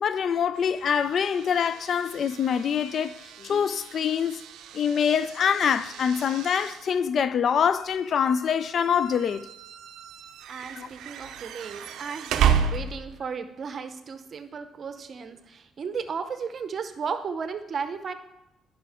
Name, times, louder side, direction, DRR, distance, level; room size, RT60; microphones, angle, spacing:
voice 1, 0.0-4.4 4.7-9.5 10.8-10.9, left 7 dB, 60° left, 0.3 m, -25 dB
sound 1, 0.5-13.3, right 8 dB, 85° right, 0.5 m, -33 dB
voice 2, 10.5-18.1, right 6 dB, 50° right, 0.7 m, -35 dB
10.0 x 5.8 x 3.5 m
cardioid pair, 90°, 0 cm